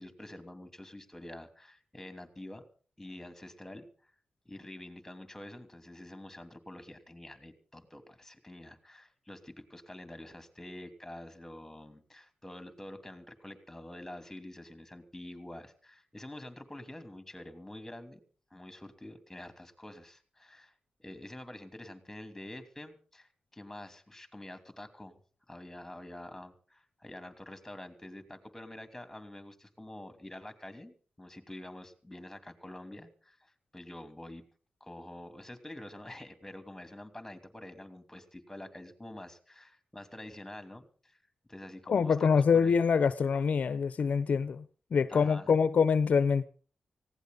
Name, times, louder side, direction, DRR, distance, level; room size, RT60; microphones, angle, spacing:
voice 1, 0.0-2.6 3.0-3.9 4.4-18.2 18.5-20.7 21.0-25.2 25.5-34.4 34.8-41.2 41.5-42.7 45.1-45.5, left 1 dB, 10° left, 3.0 m, -47 dB
voice 2, 41.9-44.6 44.9-46.4, left 6 dB, 65° left, 0.7 m, -25 dB
19.0 x 16.5 x 4.0 m
cardioid pair, 65°, 3 cm